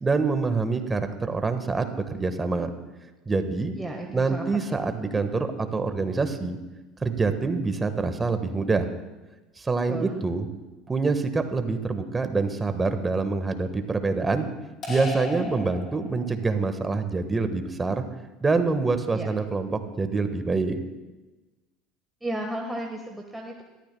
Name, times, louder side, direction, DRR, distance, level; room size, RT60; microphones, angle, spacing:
voice 1, 0.0-2.7 3.2-3.7 4.1-6.6 7.0-8.9 9.6-10.5 10.9-14.5 14.9-18.0 18.4-20.8, right 4 dB, 20° right, 8 dB, 1.5 m, -26 dB
voice 2, 3.8-5.0 9.9-10.2 19.1-19.3 22.2-23.6, right 1 dB, 5° right, 0 dB, 1.5 m, -34 dB
sound 1, 14.8-16.5, left 3 dB, 40° left, 5.5 m, -35 dB
22.0 x 13.5 x 2.3 m, 1.1 s
hypercardioid pair, 70°, 0 cm